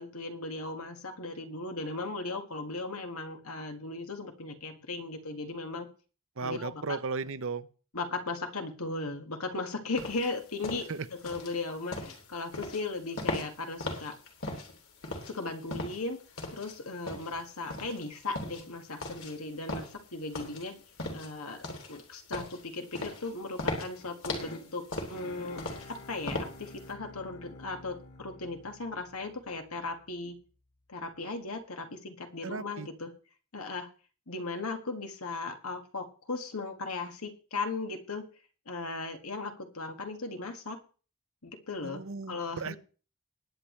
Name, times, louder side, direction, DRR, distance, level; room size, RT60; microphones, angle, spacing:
voice 1, 0.0-5.9 6.4-7.0 7.9-14.2 15.2-16.2 16.5-20.8 21.1-25.6 25.9-30.4 30.9-33.1 33.5-33.9 34.3-38.2 38.7-40.8 41.4-42.8, left 3 dB, 85° left, 5 dB, 1.9 m, -37 dB
voice 2, 6.4-7.7 10.9-11.1 32.4-32.9 41.8-42.8, right 4 dB, 65° right, 13 dB, 0.8 m, -35 dB
sound 1, 10.0-26.9, left 2 dB, 70° left, 3.2 m, -38 dB
sound 2, 24.0-30.1, left 2 dB, 50° left, 2.3 m, -50 dB
20.0 x 8.6 x 3.3 m, 0.37 s
head